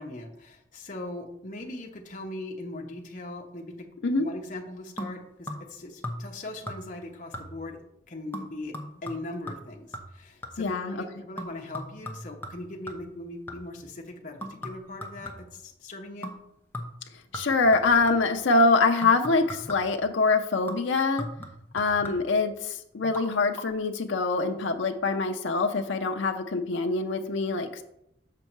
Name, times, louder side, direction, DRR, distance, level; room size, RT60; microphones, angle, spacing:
voice 1, 0.0-3.9 4.2-7.8 8.1-8.7 9.0-16.3, left 2 dB, 45° left, 1 dB, 1.0 m, -40 dB
sound 1, 5.0-5.8 6.0-6.4 6.7-7.0 7.3-7.8 8.3-10.8 11.4-13.8 14.4-15.7 16.2-16.5 16.7-18.4 19.0-20.0 20.7-22.4 23.0-23.3 23.5-23.6, left 1 dB, 10° left, 0.8 m, -39 dB
voice 2, 10.6-10.9 17.3-21.3 21.7-27.8, left 3 dB, 90° left, 5 dB, 0.6 m, -24 dB
6.9 x 5.3 x 4.5 m, 0.77 s
head